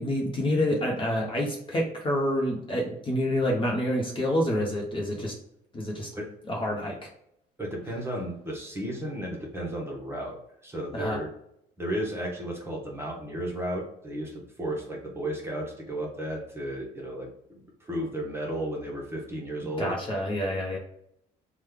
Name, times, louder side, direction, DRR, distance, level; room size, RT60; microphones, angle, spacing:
voice 1, 0.0-5.3 5.7-6.1 6.5-7.0 10.9-11.2 19.6-20.8, left 1 dB, 30° left, -1 dB, 0.8 m, -28 dB
voice 2, 7.6-10.4 10.6-11.3 11.8-19.9, right 1 dB, 15° right, -2 dB, 0.9 m, -34 dB
3.1 x 2.3 x 3.5 m, 0.74 s
cardioid pair, 110°, 17 cm